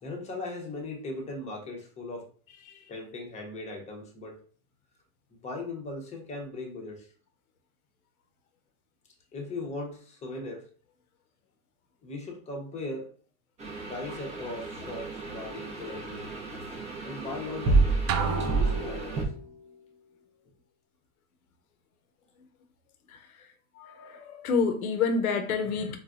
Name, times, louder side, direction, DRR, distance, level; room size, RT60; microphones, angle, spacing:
voice 1, 0.0-2.3 2.9-4.4 5.4-7.1 9.3-10.6 12.0-13.1 13.9-16.2 17.0-19.2, left 2 dB, 15° left, 0.7 m, -38 dB
sound 1, 13.6-19.2, right 3 dB, 15° right, 0.6 m, -30 dB
sound 2, 18.1-19.5, right 5 dB, 70° right, 0.5 m, -31 dB
voice 2, 23.8-26.0, left 5 dB, 90° left, 0.7 m, -28 dB
4.0 x 2.2 x 2.4 m
hypercardioid pair, 125°, 42 cm